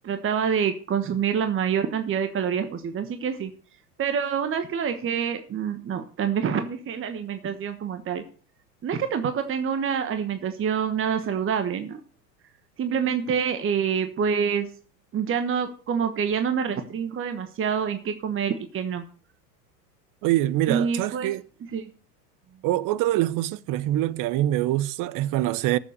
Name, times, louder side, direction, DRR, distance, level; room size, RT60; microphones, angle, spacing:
voice 1, 0.0-3.5 4.0-8.2 8.8-12.0 12.8-14.7 15.1-19.0 20.7-21.3 21.7-21.9, right 7 dB, 25° right, 1.3 m, -26 dB
voice 2, 20.2-21.4 22.6-25.8, right 14 dB, 40° right, 0.8 m, -24 dB
13.5 x 7.3 x 6.7 m
hypercardioid pair, 100°, 48 cm